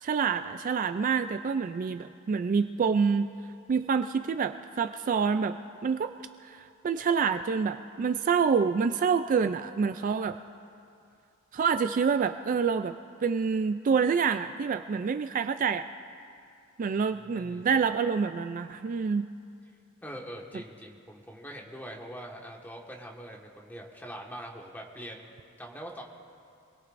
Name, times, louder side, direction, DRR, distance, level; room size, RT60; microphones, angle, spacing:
voice 1, 0.0-3.3 3.7-5.6 5.8-6.1 6.4-10.4 11.5-12.9 13.2-15.9 16.8-19.3, right 6 dB, 40° right, 9 dB, 0.3 m, -27 dB
voice 2, 17.2-17.6 20.0-26.0, equal, 10° left, -1 dB, 1.5 m, -43 dB
26.0 x 20.5 x 2.6 m, 2.5 s
head